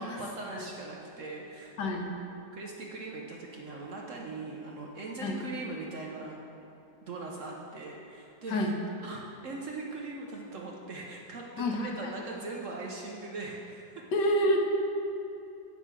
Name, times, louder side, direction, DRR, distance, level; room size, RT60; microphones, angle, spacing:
voice 1, 0.0-1.8 2.5-6.4 7.0-8.6 9.0-14.0, right 3 dB, 55° right, -1 dB, 0.9 m, -40 dB
voice 2, 1.8-2.1 5.2-5.4 8.5-8.7 11.6-12.2 14.1-14.7, equal, 75° left, 1 dB, 1.5 m, -28 dB
8.1 x 5.6 x 6.0 m, 2.8 s
omnidirectional pair, 1.9 m